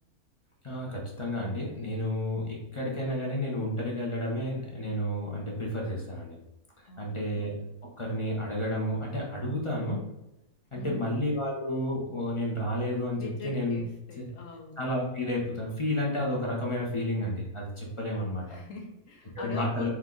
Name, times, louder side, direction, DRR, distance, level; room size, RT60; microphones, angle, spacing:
voice 1, 0.6-6.4 6.8-7.6 8.0-10.1 10.7-13.8 14.2-14.3 14.8-18.6 19.3-19.9, left 1 dB, 30° left, -3 dB, 0.6 m, -31 dB
voice 2, 6.9-7.5 10.7-11.1 13.1-14.9 18.4-19.9, left 3 dB, 65° left, 2 dB, 1.0 m, -43 dB
4.4 x 2.5 x 3.7 m, 0.93 s
omnidirectional pair, 1.6 m